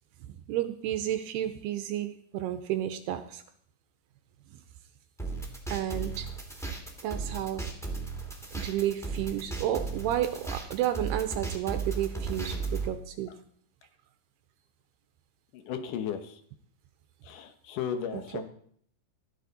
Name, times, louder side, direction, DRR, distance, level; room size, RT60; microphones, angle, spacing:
voice 1, 0.2-3.4 5.7-6.3 7.0-7.7 8.5-13.3 18.1-18.4, right 12 dB, 80° right, 8 dB, 2.5 m, -32 dB
sound 1, 5.2-12.9, right 4 dB, ahead, 1.0 m, -35 dB
voice 2, 15.5-16.4 17.2-18.5, left 8 dB, 70° left, 7 dB, 2.0 m, -35 dB
15.5 x 13.0 x 4.1 m, 0.63 s
omnidirectional pair, 5.1 m